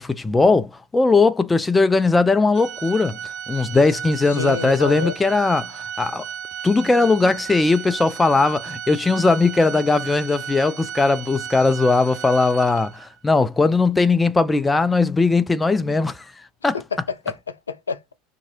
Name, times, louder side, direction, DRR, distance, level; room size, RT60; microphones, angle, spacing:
voice 1, 0.0-3.2 3.5-6.2 6.6-16.2 16.6-16.8, left 3 dB, 15° left, 0.4 m, -19 dB
Organ, 2.5-13.2, right 8 dB, 60° right, 0.5 m, -34 dB
voice 2, 4.3-5.1 16.7-18.1, left 5 dB, 85° left, 0.4 m, -29 dB
2.8 x 2.5 x 2.9 m
hypercardioid pair, 80°, 0 cm